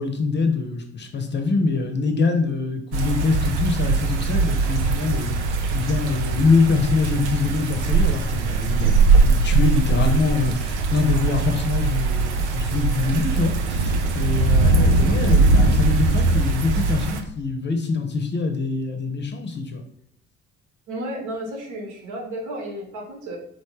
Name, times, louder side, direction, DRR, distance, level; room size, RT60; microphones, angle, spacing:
voice 1, 0.0-5.4 5.7-9.0 9.2-19.8, left 4 dB, 30° left, 5 dB, 0.7 m, -24 dB
sound 1, 2.9-17.2, right 3 dB, 80° right, 0.6 m, -20 dB
voice 2, 20.9-23.4, right 1 dB, 55° right, 0 dB, 1.2 m, -32 dB
4.1 x 3.2 x 3.1 m, 0.70 s
figure-of-eight pair, 50°, 35 cm